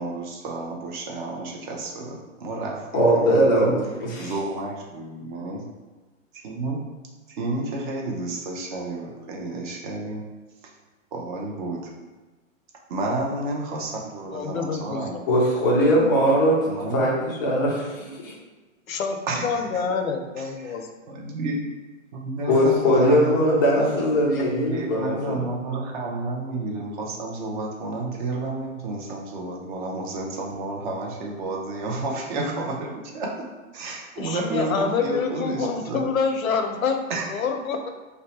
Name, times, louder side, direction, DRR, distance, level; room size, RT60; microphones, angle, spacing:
voice 1, 0.0-3.8 4.2-5.6 6.4-6.8 7.4-10.2 10.6-10.7 11.1-11.8 12.9-15.2 16.6-17.1 19.3-20.0 20.4-21.6 22.1-24.0 24.2-32.9 33.1-33.3 33.7-36.1 37.1-37.3, right 2 dB, 35° right, -1 dB, 0.6 m, -31 dB
voice 2, 2.9-4.3 15.3-16.6 16.9-18.3 22.5-25.4, equal, 15° left, -5 dB, 0.3 m, -20 dB
voice 3, 14.3-15.2 18.9-20.9 34.2-37.0 37.3-37.9, left 5 dB, 85° left, 5 dB, 0.6 m, -27 dB
2.7 x 2.1 x 4.0 m, 1.2 s
hypercardioid pair, 135°, 40 cm